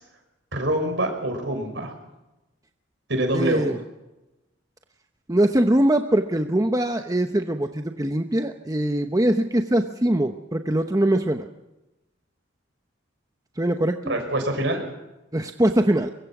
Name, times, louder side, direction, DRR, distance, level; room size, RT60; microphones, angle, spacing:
voice 1, 0.5-1.9 3.1-3.7 14.1-14.9, right 1 dB, 65° right, 5 dB, 5.9 m, -25 dB
voice 2, 3.3-3.8 5.3-11.5 13.6-14.1 15.3-16.1, right 1 dB, 20° right, 6 dB, 0.9 m, -22 dB
23.0 x 23.0 x 6.1 m, 0.99 s
head